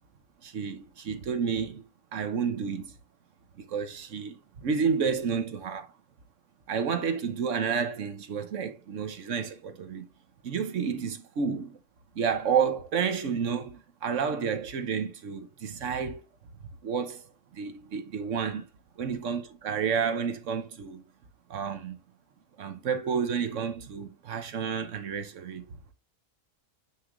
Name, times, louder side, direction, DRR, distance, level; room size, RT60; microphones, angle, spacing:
voice 1, 0.4-1.8 2.1-2.9 3.6-5.9 6.7-10.1 10.4-11.7 12.1-16.2 16.8-17.3 17.5-18.7 19.0-21.0 21.5-22.0 22.6-25.6, right 6 dB, 65° right, 1.2 m, -30 dB
9.9 x 3.7 x 3.0 m
omnidirectional pair, 1.5 m